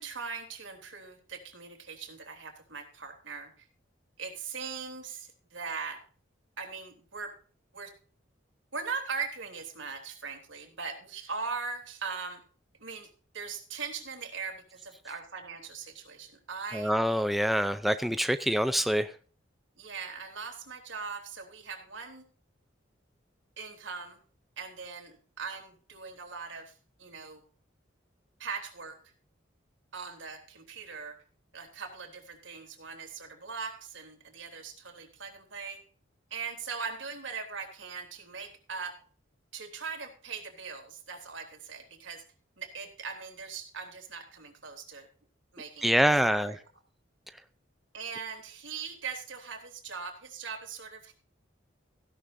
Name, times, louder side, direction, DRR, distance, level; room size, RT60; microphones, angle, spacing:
voice 1, 0.0-3.6 4.2-6.0 6.6-7.3 7.7-7.9 8.7-12.4 12.8-13.1 13.3-16.9 19.8-22.2 23.6-24.2 24.6-26.7 27.0-27.4 28.4-29.0 29.9-31.2 31.5-35.8 36.3-39.0 39.5-42.2 42.6-45.1 45.5-46.6 47.9-51.1, right 5 dB, 80° right, 4 dB, 3.4 m, -40 dB
voice 2, 16.7-19.1 45.8-46.5, equal, ahead, 9 dB, 0.5 m, -25 dB
16.0 x 11.5 x 2.7 m, 0.41 s
head